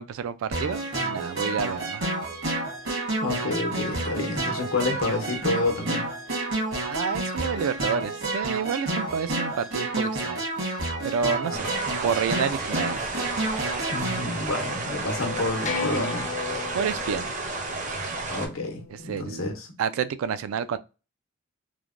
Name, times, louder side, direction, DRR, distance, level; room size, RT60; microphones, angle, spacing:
voice 1, 0.0-2.0 6.8-10.4 11.0-11.7 12.0-13.0 16.7-17.3 18.9-19.5 19.8-20.8, right 7 dB, 90° right, 0.3 m, -29 dB
sound 1, 0.5-14.2, right 2 dB, 65° right, 1.2 m, -30 dB
voice 2, 3.2-6.1 11.5-11.7 13.9-16.3 18.3-19.7, left 2 dB, 90° left, 0.8 m, -29 dB
sound 2, 11.5-18.5, right 3 dB, 35° right, 0.5 m, -32 dB
sound 3, 14.2-19.3, left 5 dB, 35° left, 0.4 m, -36 dB
3.2 x 2.1 x 2.4 m
head